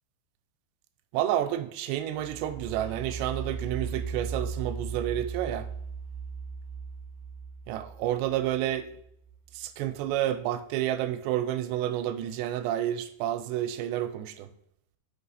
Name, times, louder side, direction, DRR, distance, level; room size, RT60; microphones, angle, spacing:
voice 1, 1.1-5.7 7.7-8.9 9.5-14.5, right 12 dB, 85° right, 10 dB, 2.7 m, -30 dB
sound 1, 2.1-9.8, right 5 dB, 65° right, 1.7 m, -38 dB
6.1 x 5.5 x 4.0 m, 0.71 s
omnidirectional pair, 5.1 m